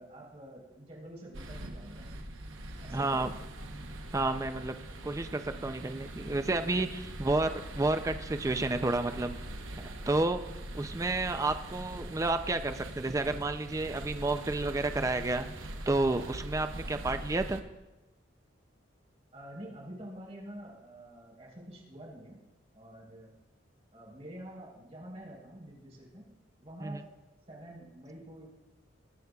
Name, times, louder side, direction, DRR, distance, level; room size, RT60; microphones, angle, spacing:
voice 1, 0.0-2.1 2.8-3.4 7.4-7.6 16.7-17.0 19.3-22.4 22.7-23.3 23.9-26.3 26.6-27.0 27.5-28.5, right 1 dB, 35° right, -3 dB, 3.8 m, -47 dB
sound 1, 1.3-17.6, right 1 dB, 90° right, 0.9 m, -42 dB
voice 2, 2.9-3.3 4.1-4.8 5.0-9.4 10.1-10.4 10.7-15.5 15.9-17.6 26.8-27.0, right 2 dB, 15° right, 8 dB, 0.4 m, -30 dB
20.5 x 7.9 x 2.3 m, 1.1 s
head